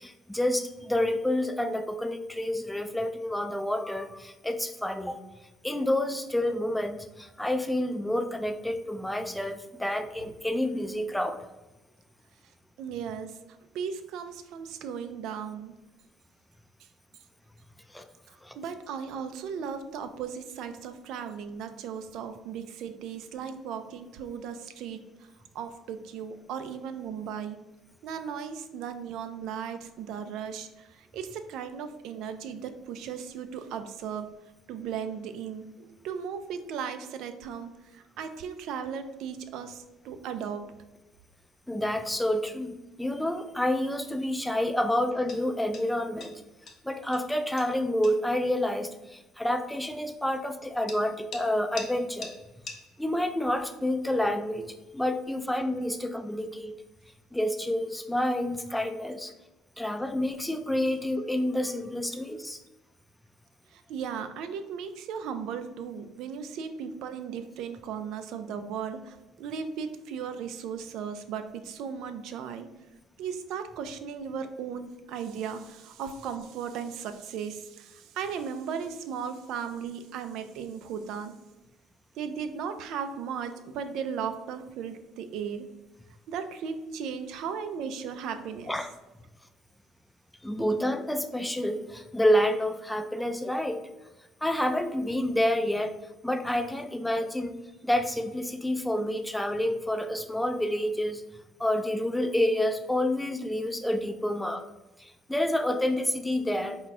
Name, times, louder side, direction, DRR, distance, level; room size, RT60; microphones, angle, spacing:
voice 1, 0.0-5.2 5.6-11.4 17.9-18.1 18.4-18.6 41.7-46.4 46.8-52.3 53.0-56.7 57.3-59.3 59.8-62.6 88.7-88.9 90.4-93.8 94.4-95.9 96.2-97.6 97.8-101.2 101.6-104.6 105.0-106.8, left 1 dB, 5° left, 7 dB, 0.4 m, -28 dB
voice 2, 12.8-13.4 13.7-15.7 18.3-25.0 25.5-27.6 28.0-34.3 34.7-40.7 63.7-72.7 73.2-81.3 82.2-85.7 86.3-88.7, right 7 dB, 70° right, 9 dB, 0.4 m, -36 dB
sound 1, 39.0-57.3, left 4 dB, 55° left, 0.9 m, -51 dB
4.3 x 2.3 x 4.1 m, 1.0 s
supercardioid pair, 90°, 0 cm